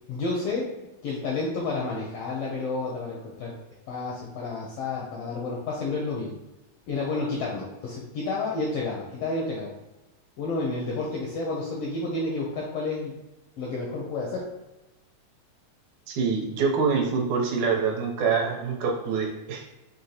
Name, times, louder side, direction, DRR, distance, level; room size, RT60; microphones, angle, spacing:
voice 1, 0.1-0.7 1.0-3.5 3.9-6.3 6.9-9.7 10.4-13.2 13.6-14.5, left 3 dB, 80° left, -2 dB, 1.4 m, -30 dB
voice 2, 16.1-19.7, right 5 dB, 75° right, 0 dB, 2.0 m, -25 dB
5.5 x 2.8 x 2.8 m, 1.0 s
omnidirectional pair, 3.5 m